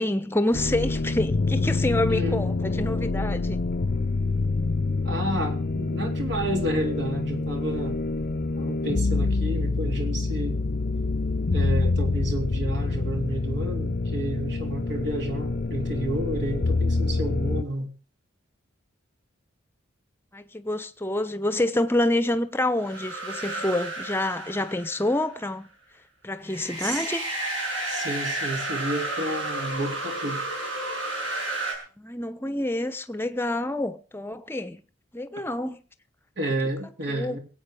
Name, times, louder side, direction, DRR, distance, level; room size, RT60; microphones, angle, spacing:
voice 1, 0.0-3.6 20.3-25.7 26.2-27.3 32.0-34.8 35.1-35.8 37.1-37.4, left 1 dB, 10° left, 0.9 m, -27 dB
sound 1, 0.5-17.6, left 3 dB, 50° left, 0.6 m, -26 dB
voice 2, 2.1-2.4 5.0-8.0 8.6-10.6 11.5-17.9 26.8-27.0 27.8-30.4 36.4-37.4, right 1 dB, 60° right, 3.5 m, -31 dB
sound 2, 22.8-25.3 26.4-31.7, right 2 dB, 85° right, 6.2 m, -32 dB
22.5 x 8.6 x 5.0 m
head